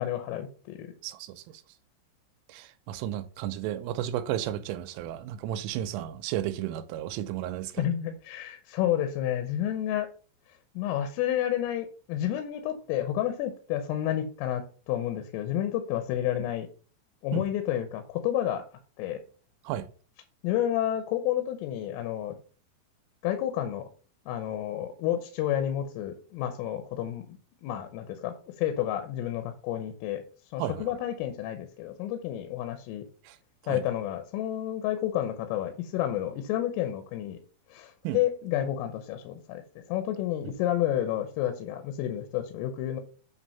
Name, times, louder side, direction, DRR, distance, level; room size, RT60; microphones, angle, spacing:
voice 1, 0.0-0.9 7.8-10.1 10.8-16.7 17.2-18.6 19.0-19.2 20.4-22.4 23.2-23.8 24.3-30.2 30.5-33.0 33.7-37.4 37.7-39.6 39.9-43.0, left 11 dB, 85° left, 3.4 m, -30 dB
voice 2, 1.0-1.4 2.5-7.9 17.3-17.5 19.6-19.9 30.6-31.0 33.2-33.4 33.6-33.8 38.0-38.2, right 12 dB, 85° right, 3.1 m, -33 dB
9.0 x 3.6 x 5.5 m
omnidirectional pair, 5.8 m